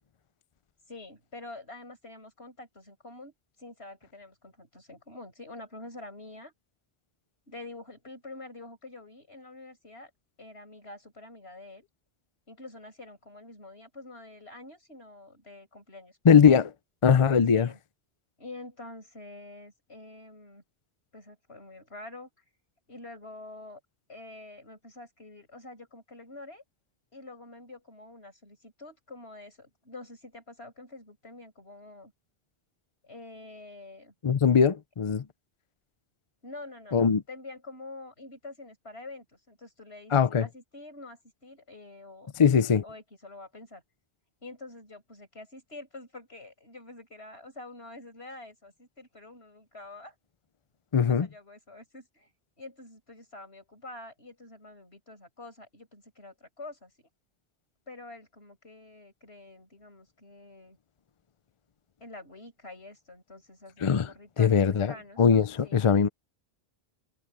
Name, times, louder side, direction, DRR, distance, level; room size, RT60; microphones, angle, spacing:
voice 1, 0.9-6.5 7.5-10.1 10.4-11.9 12.5-16.2 17.5-17.8 18.4-20.6 21.1-22.3 22.9-23.8 24.1-26.6 27.1-32.1 33.0-34.1 36.4-43.8 44.4-50.1 51.1-52.3 52.6-57.1 57.9-60.8 62.0-65.2 65.6-65.8, left 2 dB, 75° left, 7.2 m, -47 dB
voice 2, 16.2-16.7 17.0-17.7 34.2-35.2 36.9-37.2 40.1-40.5 42.4-42.8 50.9-51.3 63.8-64.1 64.4-66.1, left 6 dB, 40° left, 0.5 m, -21 dB
omnidirectional pair, 1.1 m